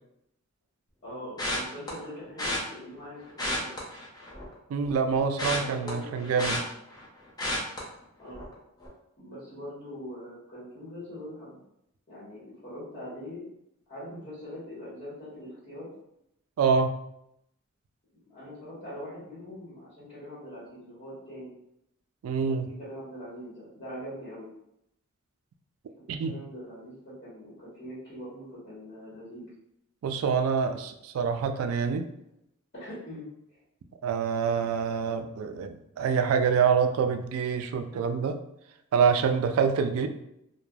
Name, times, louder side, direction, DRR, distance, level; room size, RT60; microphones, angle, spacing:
voice 1, 1.0-3.7 5.6-6.4 8.2-8.5 9.2-11.6 12.1-13.4 13.9-15.9 18.3-21.5 22.5-24.5 25.9-29.5 32.7-33.3 33.5-33.6 39.3-39.5, equal, 40° left, -9 dB, 1.1 m, -42 dB
sound 1, 1.4-1.9 2.4-2.6 3.3-4.5 4.8-7.1 7.4-7.8 8.3-8.5 8.8-8.9, left 1 dB, 20° left, 0.6 m, -32 dB
voice 2, 4.7-6.6 16.6-16.9 22.2-22.7 26.1-26.4 30.0-32.1 34.0-38.4 38.9-40.1, right 6 dB, 85° right, 8 dB, 0.3 m, -26 dB
3.2 x 2.1 x 2.3 m, 0.79 s
head